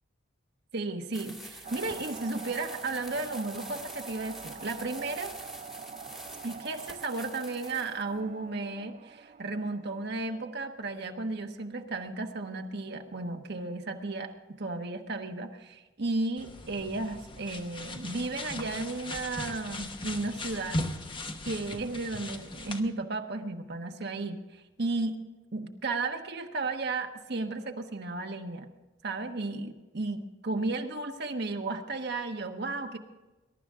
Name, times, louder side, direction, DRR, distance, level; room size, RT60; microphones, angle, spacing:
voice 1, 0.7-5.3 6.4-20.8 21.4-25.2 25.5-28.7 29.0-33.0, right 3 dB, 55° right, 4 dB, 1.2 m, -34 dB
sound 1, 1.1-8.0, equal, ahead, 1.5 m, -46 dB
sound 2, 1.6-10.7, right 5 dB, 35° right, 0.4 m, -46 dB
sound 3, 16.4-22.8, left 2 dB, 25° left, 1.1 m, -38 dB
22.0 x 12.0 x 3.7 m, 1.1 s
head